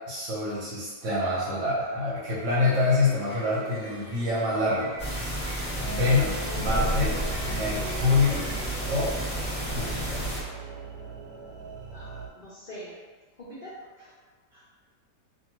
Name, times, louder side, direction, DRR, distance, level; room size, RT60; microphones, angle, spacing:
voice 1, 0.1-4.9 5.8-7.1 7.4-8.4 8.9-9.1 9.5-10.2, left 3 dB, 55° right, -8 dB, 1.0 m, -26 dB
sound 1, 2.4-10.1, equal, 35° left, 0.9 m, -45 dB
sound 2, 5.0-10.4, equal, 15° left, 1.2 m, -31 dB
sound 3, 5.7-12.3, right 6 dB, 80° right, 1.3 m, -40 dB
voice 2, 6.4-7.5 11.9-12.9 13.4-13.7 14.0-14.1 14.5-14.6, equal, 65° left, -10 dB, 0.5 m, -42 dB
2.6 x 2.5 x 2.9 m, 1.4 s
omnidirectional pair, 1.8 m